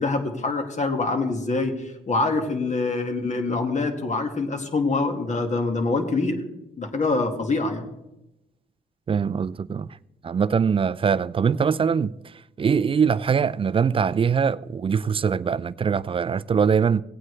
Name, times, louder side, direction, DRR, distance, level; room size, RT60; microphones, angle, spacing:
voice 1, 0.0-6.4 6.8-7.8, left 3 dB, 35° left, 1.9 m, -25 dB
voice 2, 9.1-9.9 10.2-12.1 12.6-17.0, right 6 dB, 30° right, 0.3 m, -22 dB
17.5 x 8.8 x 3.3 m
cardioid pair, 90°, 20 cm